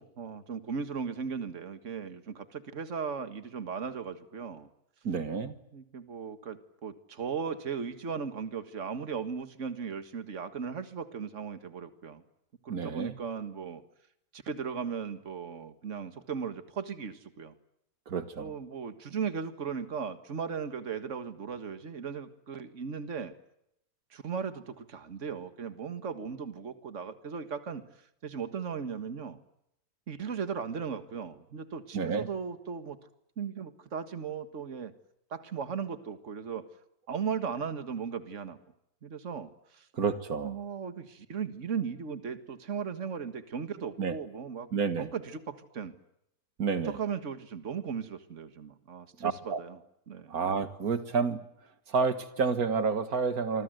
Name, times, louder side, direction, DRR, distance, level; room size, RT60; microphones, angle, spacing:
voice 1, 0.0-4.7 5.7-12.2 12.6-13.8 14.3-17.5 18.4-23.3 24.1-27.8 28.2-29.4 30.1-33.0 33.4-34.9 35.3-36.7 37.1-38.6 39.0-39.9 40.4-44.7 45.0-45.9 46.9-49.8 50.1-50.4, right 6 dB, 55° right, 10 dB, 2.0 m, -37 dB
voice 2, 5.0-5.6 12.7-13.2 18.1-18.5 31.9-32.3 39.9-40.6 44.0-44.2 44.7-45.1 46.6-47.0 49.2-49.6 50.3-51.4 51.9-53.6, right 5 dB, 80° right, 10 dB, 2.1 m, -29 dB
27.5 x 25.0 x 7.9 m, 0.78 s
omnidirectional pair, 1.5 m